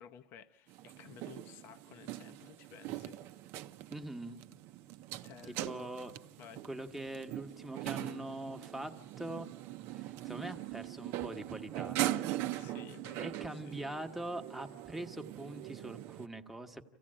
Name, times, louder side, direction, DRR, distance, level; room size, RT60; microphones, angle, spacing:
voice 1, 0.0-3.2 5.2-5.9 6.4-6.6 12.5-13.7, left 9 dB, 45° left, 0.8 m, -54 dB
sound 1, 0.7-16.3, right 15 dB, 50° right, 0.6 m, -41 dB
voice 2, 3.9-4.4 5.5-6.1 6.6-9.5 9.9-12.0 13.2-16.8, right 1 dB, 5° right, 1.1 m, -43 dB
26.5 x 15.5 x 8.7 m
supercardioid pair, 120°, 5 cm